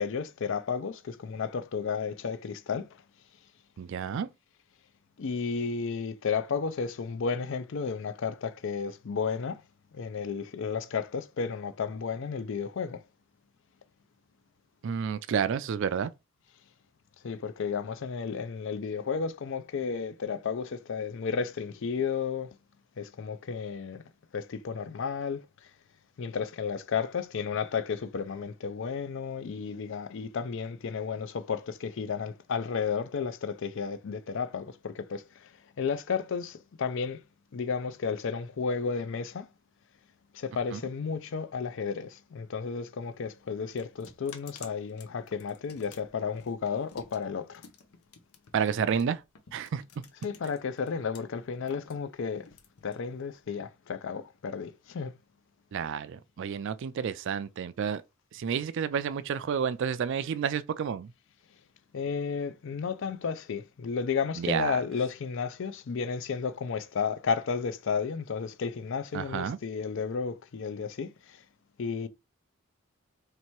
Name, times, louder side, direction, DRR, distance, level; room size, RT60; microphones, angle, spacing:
voice 1, 0.0-3.0 5.2-9.6 9.9-13.0 17.2-22.5 23.0-24.0 24.3-25.7 26.2-37.2 37.5-39.5 40.3-47.6 50.2-52.5 52.8-55.1 61.9-71.4 71.8-72.1, left 5 dB, 60° left, 0.4 m, -33 dB
voice 2, 3.8-4.3 14.8-16.1 40.7-40.8 48.5-49.2 49.5-49.8 55.7-58.0 58.3-61.1 64.4-64.8 69.1-69.6, right 7 dB, 55° right, 0.3 m, -30 dB
sound 1, 43.0-51.2 51.5-53.4, left 5 dB, 85° left, 0.7 m, -52 dB
3.2 x 2.9 x 4.5 m
head